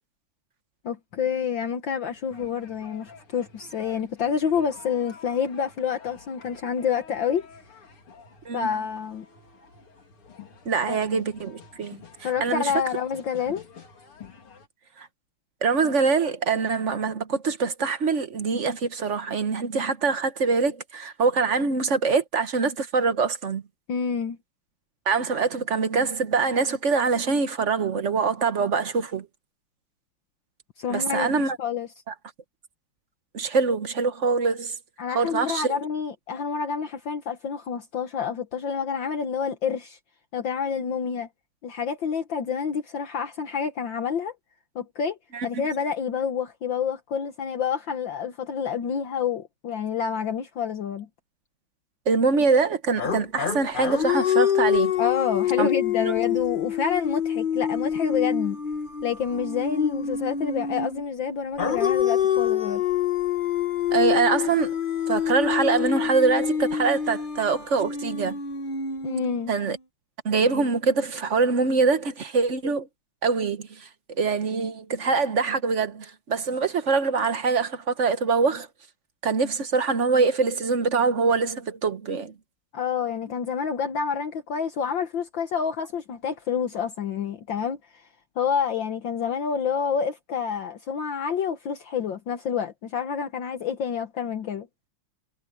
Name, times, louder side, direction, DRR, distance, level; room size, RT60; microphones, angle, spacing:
voice 1, 0.8-7.5 8.5-9.3 10.9-11.0 12.2-13.6 23.9-24.4 30.8-31.9 35.0-40.0 40.3-41.3 41.6-44.3 44.8-51.1 55.0-58.6 59.0-62.8 69.0-69.6 82.7-87.8 88.4-94.7, left 7 dB, 60° left, 1.8 m, -28 dB
sound 1, 2.1-14.7, left 6 dB, 80° left, 4.0 m, -49 dB
voice 2, 10.6-12.0 12.4-12.7 15.0-15.1 15.6-23.6 25.1-29.3 30.9-31.6 32.1-32.2 33.3-34.8 35.1-35.8 45.3-45.5 52.1-54.9 55.6-55.7 56.0-56.1 63.9-64.8 65.1-68.4 69.5-69.8 70.2-72.9 73.2-73.9 74.2-78.7 79.2-82.3, right 4 dB, 45° right, 1.0 m, -24 dB
sound 2, 53.0-61.0 61.6-69.7, left 8 dB, 35° left, 0.8 m, -26 dB
omnidirectional pair, 2.4 m